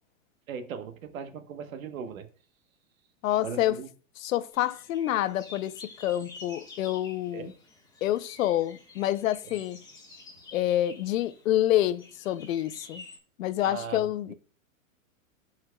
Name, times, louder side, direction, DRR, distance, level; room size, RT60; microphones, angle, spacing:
voice 1, 0.5-2.3 3.4-3.9 7.3-7.5 13.6-14.3, right 6 dB, 75° right, 1.2 m, -38 dB
voice 2, 3.2-3.8 4.2-7.5 8.0-9.8 10.5-13.0 13.4-14.3, left 13 dB, 75° left, 0.7 m, -27 dB
sound 1, 4.5-13.2, left 3 dB, 10° left, 1.6 m, -50 dB
13.0 x 4.6 x 2.3 m
hypercardioid pair, 135°, 40 cm